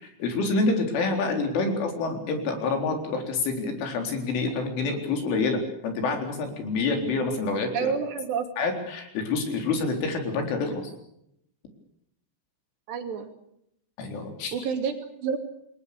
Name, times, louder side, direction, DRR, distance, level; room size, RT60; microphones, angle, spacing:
voice 1, 0.0-7.9 8.6-10.7 14.0-14.6, left 3 dB, 90° left, 4 dB, 6.5 m, -27 dB
voice 2, 7.7-8.5 12.9-13.3 14.5-15.4, right 6 dB, 65° right, 5 dB, 4.5 m, -29 dB
28.0 x 21.5 x 6.8 m, 0.77 s
omnidirectional pair, 5.4 m